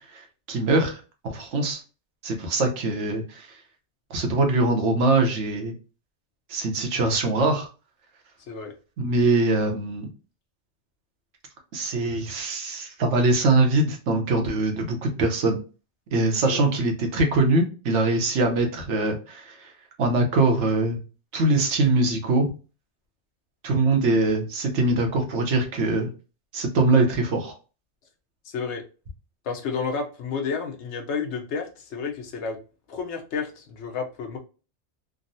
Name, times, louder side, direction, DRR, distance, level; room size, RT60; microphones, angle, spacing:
voice 1, 0.1-1.8 2.2-3.5 4.1-5.7 6.5-7.7 9.0-10.1 11.7-15.6 16.1-19.7 20.0-21.0 21.3-22.5 23.6-26.1 26.5-27.6, right 2 dB, 80° right, 4 dB, 1.1 m, -23 dB
voice 2, 28.4-28.8 29.4-32.6 32.9-34.4, left 5 dB, 75° left, 4 dB, 1.0 m, -31 dB
3.5 x 2.0 x 2.6 m, 0.34 s
omnidirectional pair, 1.2 m